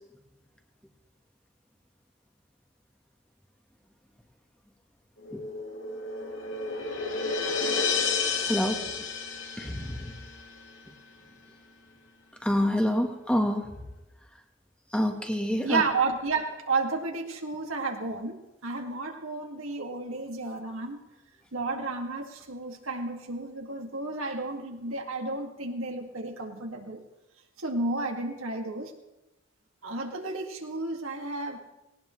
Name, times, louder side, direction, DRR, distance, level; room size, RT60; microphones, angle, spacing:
sound 1, 5.2-10.4, left 4 dB, 80° left, 2.8 m, -31 dB
voice 1, 8.5-8.8 9.6-10.1 12.4-13.7 14.9-15.8, equal, 5° left, 3 dB, 1.4 m, -27 dB
voice 2, 15.6-21.0 21.5-27.0 27.6-28.9 29.8-31.6, right 3 dB, 90° right, 2 dB, 2.3 m, -32 dB
19.0 x 18.5 x 3.3 m, 1.0 s
head